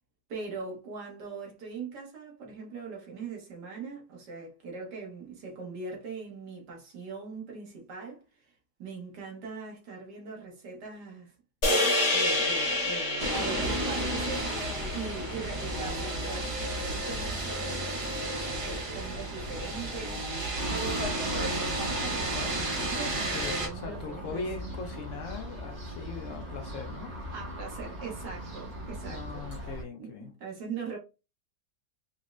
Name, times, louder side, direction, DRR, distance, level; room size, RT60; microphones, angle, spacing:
voice 1, 0.3-11.3 11.7-20.3 20.7-24.5 27.3-29.7 30.0-31.0, right 4 dB, 70° right, 1.7 m, -41 dB
sound 1, 11.6-16.0, left 2 dB, 30° left, 0.6 m, -29 dB
sound 2, 13.2-23.7, right 1 dB, 40° right, 0.4 m, -32 dB
sound 3, 20.6-29.8, right 1 dB, 85° right, 2.1 m, -39 dB
voice 2, 23.1-27.1 29.1-30.3, left 4 dB, 70° left, 0.7 m, -40 dB
5.1 x 2.1 x 2.4 m
omnidirectional pair, 1.9 m